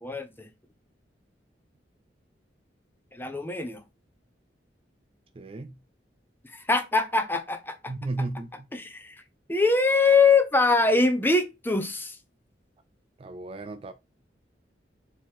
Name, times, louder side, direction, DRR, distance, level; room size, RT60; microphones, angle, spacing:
voice 1, 0.0-0.5 3.1-3.8 6.5-7.9 8.7-9.2 9.5-12.2, left 3 dB, 10° left, 0.6 m, -23 dB
voice 2, 5.4-5.8 7.9-8.7 13.2-13.9, right 2 dB, 30° right, 0.3 m, -34 dB
4.5 x 3.0 x 3.6 m
head